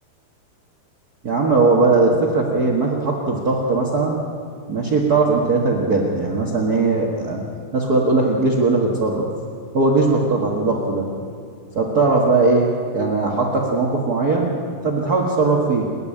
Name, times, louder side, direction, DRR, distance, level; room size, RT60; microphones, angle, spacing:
voice 1, 1.2-4.2 4.7-7.4 7.7-9.3 9.7-11.0 11.7-14.6 14.8-15.9, right 3 dB, 50° right, -2 dB, 1.1 m, -19 dB
29.0 x 11.0 x 8.7 m, 2.2 s
omnidirectional pair, 4.8 m